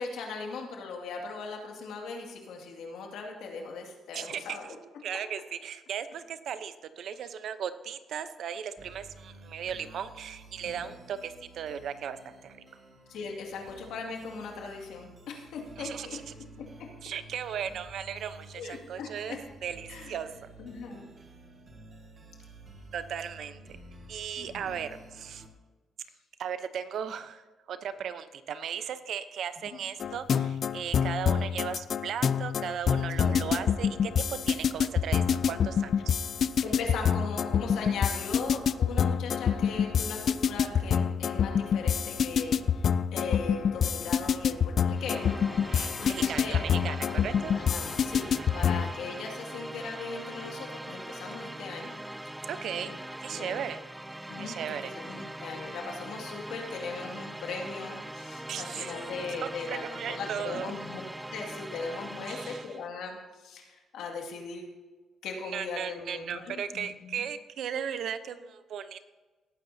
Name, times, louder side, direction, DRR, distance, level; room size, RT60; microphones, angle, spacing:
voice 1, 0.0-4.8 10.7-10.9 13.1-16.2 18.5-19.4 19.9-20.1 20.6-21.1 24.4-24.8 29.7-29.8 33.2-33.3 36.6-47.0 47.5-52.0 52.9-53.0 53.3-53.6 54.3-61.0 61.3-64.7 65.2-67.2, left 4 dB, 80° left, 1 dB, 2.2 m, -39 dB
voice 2, 4.1-4.6 5.0-12.6 15.8-16.2 17.0-20.3 22.9-23.6 24.1-25.4 26.4-36.2 45.6-47.6 48.4-48.7 52.5-52.9 53.2-53.8 54.4-54.9 58.5-58.9 59.7-60.7 62.3-62.6 65.5-69.0, right 8 dB, 70° right, 11 dB, 0.8 m, -37 dB
sound 1, 8.8-25.5, right 2 dB, 35° right, 1.9 m, -52 dB
sound 2, 30.0-48.9, left 7 dB, 55° left, 0.4 m, -27 dB
sound 3, 44.9-62.9, right 1 dB, 10° right, 0.4 m, -41 dB
18.5 x 9.5 x 2.8 m, 1.3 s
cardioid pair, 90°, 0 cm